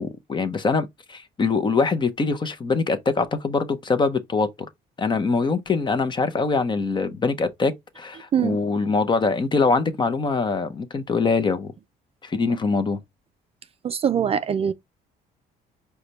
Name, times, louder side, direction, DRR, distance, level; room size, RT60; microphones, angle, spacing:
voice 1, 0.0-4.5 5.0-11.7 12.2-13.0, left 4 dB, 25° left, 0.7 m, -23 dB
voice 2, 13.8-14.7, right 8 dB, 35° right, 0.4 m, -22 dB
4.9 x 2.3 x 4.1 m
cardioid pair, 110°, 17 cm